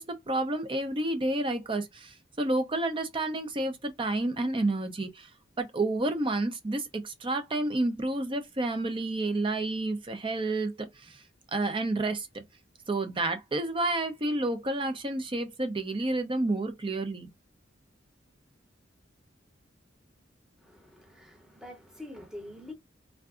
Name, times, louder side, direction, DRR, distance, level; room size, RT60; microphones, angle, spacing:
voice 1, 0.0-5.3 5.6-11.2 11.5-12.4 12.9-17.3, right 2 dB, 25° right, 0.6 m, -30 dB
voice 2, 20.6-22.7, left 1 dB, 5° right, 0.9 m, -45 dB
3.4 x 2.6 x 2.4 m
head